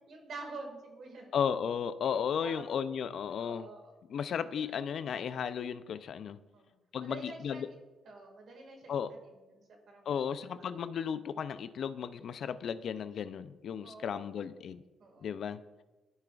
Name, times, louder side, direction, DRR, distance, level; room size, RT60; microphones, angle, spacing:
voice 1, 0.1-1.3 2.0-2.7 3.4-3.9 4.6-4.7 6.5-6.7 7.0-7.8 8.0-10.3 13.8-14.3 15.0-15.4, right 3 dB, 60° right, 2 dB, 1.8 m, -48 dB
voice 2, 1.3-3.7 4.1-6.4 6.9-7.7 8.9-9.1 10.1-14.8 15.2-15.6, left 7 dB, 60° left, 13 dB, 0.4 m, -34 dB
14.0 x 5.0 x 2.3 m, 1.2 s
cardioid pair, 90°, 0 cm